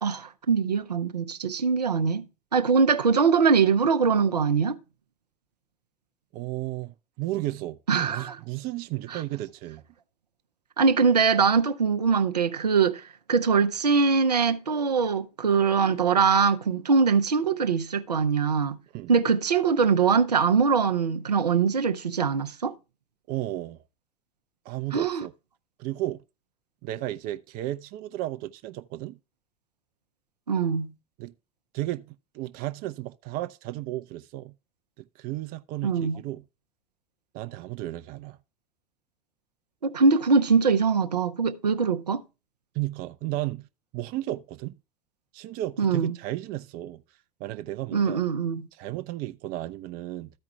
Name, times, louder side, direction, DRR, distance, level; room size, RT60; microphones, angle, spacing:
voice 1, 0.0-2.3 2.5-4.8 7.9-8.4 9.1-9.2 10.8-18.8 19.1-22.7 24.9-25.2 30.5-30.9 35.8-36.2 39.8-42.2 45.8-46.2 47.9-48.7, right 5 dB, 85° right, 0.7 m, -22 dB
voice 2, 6.3-9.8 18.9-19.1 23.3-23.8 24.6-25.3 25.8-26.2 26.8-29.2 31.2-31.3 31.7-34.5 35.2-36.4 37.3-38.4 42.7-43.7 43.9-44.8 45.3-47.0 47.4-48.2 48.7-50.3, right 16 dB, 50° right, 0.6 m, -33 dB
14.0 x 4.8 x 3.4 m
figure-of-eight pair, 75°, 20 cm